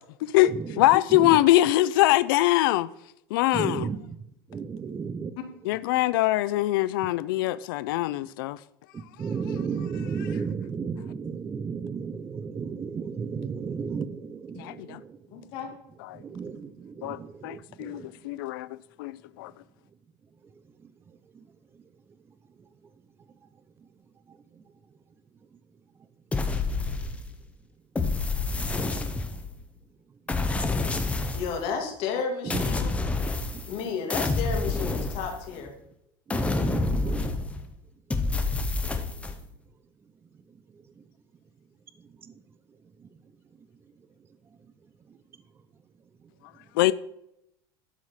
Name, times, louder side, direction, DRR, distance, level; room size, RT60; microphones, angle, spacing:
voice 1, 0.2-2.9 3.3-3.9 5.7-8.6 14.6-15.0 16.0-16.2 17.0-18.7 19.0-19.1 19.4-19.5 46.8-46.9, left 16 dB, 85° left, 0.4 m, -23 dB
voice 2, 3.5-4.0 4.5-5.3 9.2-15.2 16.2-18.1 32.5-32.6 33.5-33.6 36.3-37.3, right 6 dB, 20° right, 0.6 m, -33 dB
voice 3, 15.3-15.7 31.3-32.9 33.7-35.7, left 6 dB, 55° left, 2.4 m, -32 dB
sound 1, 26.3-27.4 27.9-29.6 30.3-31.6 32.5-33.8 34.1-35.7 36.3-37.7 38.1-39.4, left 3 dB, 10° left, 0.9 m, -28 dB
12.5 x 4.8 x 5.7 m
supercardioid pair, 140°, 11 cm